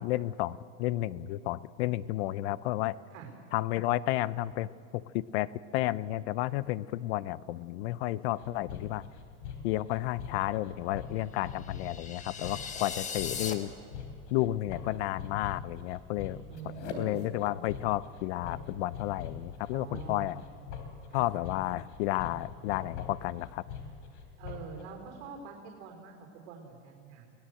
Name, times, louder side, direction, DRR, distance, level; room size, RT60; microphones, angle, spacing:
voice 1, 0.0-3.0 3.5-9.1 9.6-13.7 14.3-16.4 17.0-20.4 21.1-23.6, left 15 dB, 65° left, 19 dB, 0.7 m, -32 dB
sound 1, 8.4-24.8, left 6 dB, 80° left, 3.5 m, -43 dB
sound 2, 11.5-13.5, left 6 dB, 20° left, 1.5 m, -38 dB
voice 2, 16.5-17.2 19.7-20.6 21.1-21.3 24.4-27.2, right 6 dB, 70° right, 2 dB, 4.1 m, -45 dB
23.5 x 17.5 x 7.8 m, 2.7 s
supercardioid pair, 145°, 35 cm